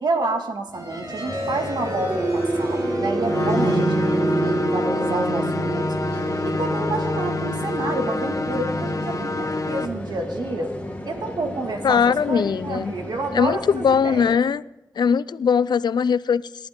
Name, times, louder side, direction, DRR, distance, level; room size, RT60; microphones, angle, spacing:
voice 1, 0.0-5.9 6.4-10.7 11.1-14.4, right 2 dB, 80° right, 4 dB, 2.0 m, -29 dB
sound 1, 0.7-12.6, right 2 dB, 60° right, 5.7 m, -28 dB
sound 2, 1.2-14.3, left 1 dB, 20° left, 2.0 m, -36 dB
sound 3, 3.3-9.9, left 3 dB, 50° left, 0.9 m, -27 dB
voice 2, 11.8-12.9 13.3-14.6 15.0-16.7, left 6 dB, 85° left, 18 dB, 0.4 m, -20 dB
27.0 x 11.5 x 3.8 m, 0.96 s
wide cardioid pair, 110°, 7 cm